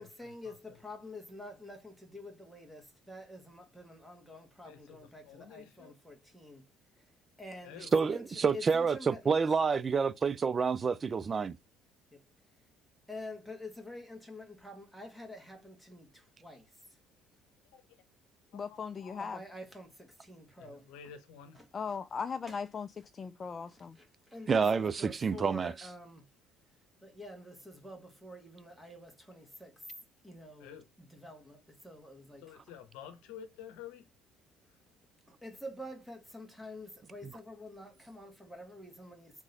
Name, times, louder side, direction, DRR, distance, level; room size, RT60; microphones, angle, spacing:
voice 1, 0.0-6.6 7.0-7.1 7.4-9.6 12.1-12.2 13.1-16.7 19.2-20.9 21.5-22.0 22.5-22.6 23.7-26.3 27.0-29.9 30.2-32.5 35.3-39.4, left 1 dB, ahead, 1.6 m, -48 dB
voice 2, 4.6-5.9 7.6-7.9 17.7-17.8 18.5-19.2 20.6-21.6 30.6-30.9 32.4-34.1, left 8 dB, 80° left, 0.8 m, -50 dB
voice 3, 7.9-11.5 24.5-25.7, right 5 dB, 35° right, 0.4 m, -28 dB
voice 4, 18.5-19.4 21.7-24.0, left 6 dB, 40° left, 0.3 m, -38 dB
3.7 x 3.1 x 4.1 m
supercardioid pair, 75°, 0 cm